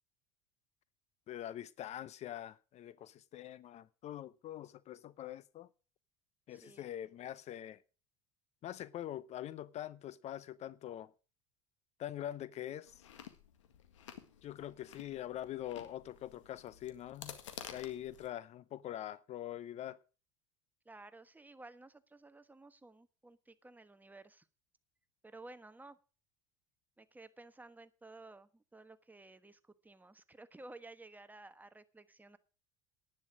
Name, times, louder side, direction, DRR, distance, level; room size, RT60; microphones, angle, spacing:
voice 1, 1.3-5.7 6.5-7.8 8.6-11.1 12.0-13.1 14.4-17.4 17.7-20.0, left 12 dB, 45° left, 0.7 m, -44 dB
voice 2, 6.5-6.9 20.8-24.5 25.2-26.0 27.0-32.4, right 2 dB, 10° right, 1.2 m, -55 dB
Chewing mastication, 12.9-18.3, left 9 dB, 85° left, 1.8 m, -52 dB
11.0 x 9.5 x 6.1 m
hypercardioid pair, 80°, 16 cm